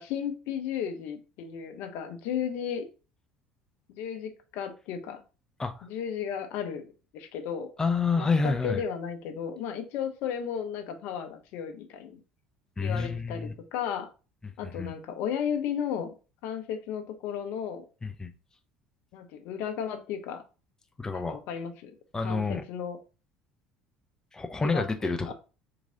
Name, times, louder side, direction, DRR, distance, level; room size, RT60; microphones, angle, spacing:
voice 1, 0.0-2.9 4.0-5.2 5.8-6.9 7.1-7.7 8.2-12.2 12.8-14.1 14.6-16.1 16.4-17.8 19.1-20.4 21.1-23.0 24.6-25.3, left 8 dB, 60° left, 0.8 m, -34 dB
voice 2, 7.8-8.8 12.8-13.5 14.8-14.9 18.0-18.3 21.0-21.4 22.1-22.6 24.3-25.3, left 4 dB, 15° left, 0.6 m, -28 dB
3.8 x 3.1 x 3.8 m
figure-of-eight pair, 60°, 4 cm